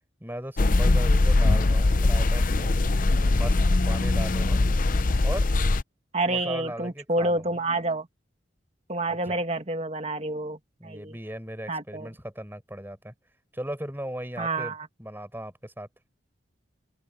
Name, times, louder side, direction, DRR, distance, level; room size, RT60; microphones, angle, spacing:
voice 1, 0.2-2.7 3.3-4.6 5.2-5.5 6.2-7.5 9.1-9.4 10.8-13.1 13.5-15.9, right 1 dB, 10° right, 6.5 m, -38 dB
sound 1, 0.6-5.8, left 2 dB, 45° left, 0.6 m, -21 dB
voice 2, 6.1-8.1 8.9-11.1 11.7-12.1 14.4-14.9, right 2 dB, 35° right, 2.2 m, -28 dB
head